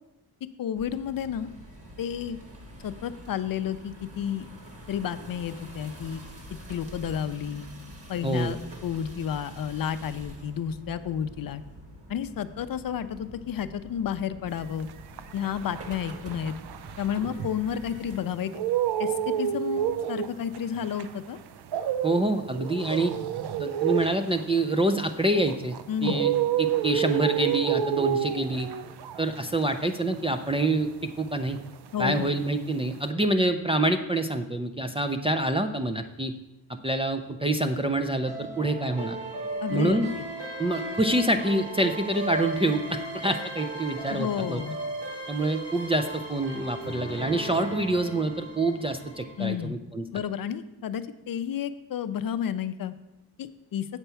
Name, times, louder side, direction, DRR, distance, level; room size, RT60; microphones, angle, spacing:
voice 1, 0.6-1.5 2.0-2.4 2.8-4.5 4.9-6.2 6.7-7.7 8.1-8.6 8.8-11.6 12.1-14.9 15.3-16.5 17.0-18.5 19.0-21.4 25.9-26.2 31.9-32.3 39.6-40.0 44.1-44.8 49.4-49.8 50.1-52.9 53.4-53.9, left 9 dB, 55° left, 12 dB, 0.5 m, -31 dB
sound 1, 0.7-18.2, equal, 35° right, 1.5 m, -46 dB
voice 2, 8.2-8.5 22.0-23.1 23.6-25.8 26.0-26.3 26.6-28.7 29.2-30.9 31.2-31.6 32.0-36.3 36.8-39.2 39.7-40.1 40.6-44.6 45.3-50.0, right 2 dB, 15° right, 4 dB, 0.4 m, -26 dB
sound 2, 14.7-18.0 18.3-31.8 32.0-33.1, right 9 dB, 70° right, 0.6 m, -30 dB
sound 3, 38.2-49.5, right 2 dB, 90° right, 3.5 m, -36 dB
8.2 x 4.4 x 6.8 m, 0.92 s
wide cardioid pair, 145°, 41 cm